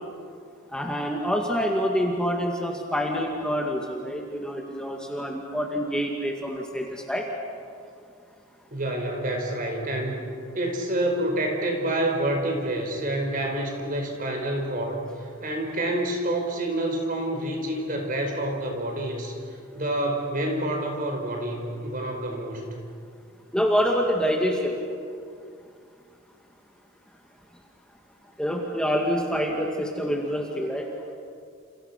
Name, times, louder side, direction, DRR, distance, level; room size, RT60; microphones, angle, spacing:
voice 1, 0.7-7.3 23.5-24.8 28.4-30.9, equal, 5° left, 0 dB, 2.1 m, -26 dB
voice 2, 8.7-10.2 10.5-15.0 15.4-19.3 19.7-22.7, right 1 dB, 45° right, 2 dB, 5.2 m, -28 dB
30.0 x 28.5 x 6.0 m, 2.3 s
head